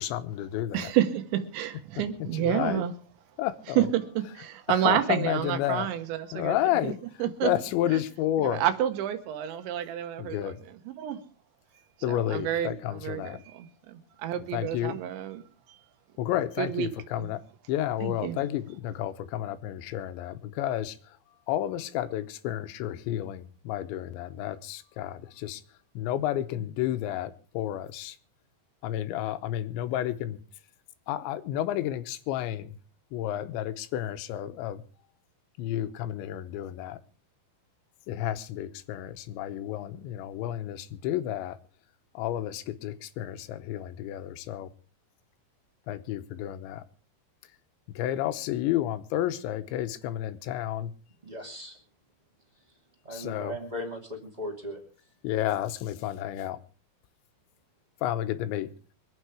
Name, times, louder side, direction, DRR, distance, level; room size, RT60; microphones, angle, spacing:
voice 1, 0.0-0.9 2.2-2.8 3.4-3.8 4.9-5.9 6.3-7.0 7.4-8.6 10.2-10.6 12.0-13.4 14.5-15.0 16.2-17.4 17.7-21.0 21.5-25.6 26.0-28.2 28.8-30.4 31.1-32.7 33.1-34.8 35.6-37.0 38.1-41.6 42.1-44.7 45.9-46.8 48.0-50.9 53.1-53.5 55.2-56.6 58.0-58.7, left 12 dB, 85° left, 12 dB, 3.2 m, -31 dB
voice 2, 0.7-2.9 3.7-6.6 6.8-6.9 7.2-7.5 7.9-8.0 8.4-11.2 12.1-15.4 16.6-17.3 18.0-18.4, right 11 dB, 85° right, 9 dB, 3.5 m, -29 dB
voice 3, 51.2-51.8 53.0-54.8, equal, 15° right, 2 dB, 1.3 m, -37 dB
24.0 x 8.9 x 4.9 m, 0.40 s
omnidirectional pair, 5.1 m